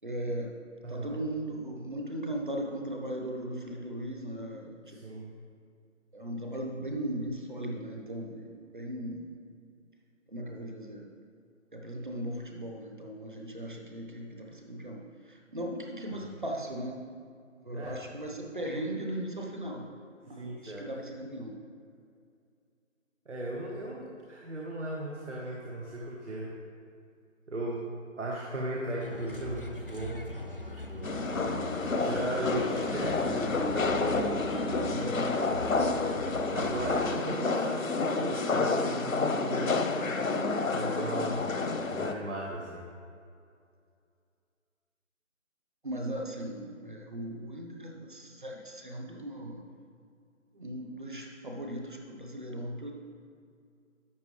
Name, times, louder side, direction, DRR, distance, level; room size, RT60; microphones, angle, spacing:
voice 1, 0.0-0.5 0.9-5.2 6.1-9.3 10.3-11.1 11.7-17.0 17.6-19.9 20.3-21.5 34.8-35.4 45.8-49.7 50.5-52.9, right 1 dB, 40° right, 0 dB, 1.1 m, -38 dB
voice 2, 0.8-1.1 4.9-5.3 17.7-18.0 20.4-20.9 23.2-26.5 27.5-27.9 28.2-30.2 30.7-31.2 31.6-34.3 35.0-35.3 36.5-39.8 40.7-41.5 41.9-42.8, right 1 dB, 65° right, -4 dB, 1.5 m, -36 dB
Bird, 29.0-37.1, left 1 dB, 45° left, 0.4 m, -41 dB
sound 1, 31.0-42.1, left 3 dB, 85° left, 0.9 m, -29 dB
11.5 x 7.7 x 3.3 m, 2.3 s
figure-of-eight pair, 175°, 39 cm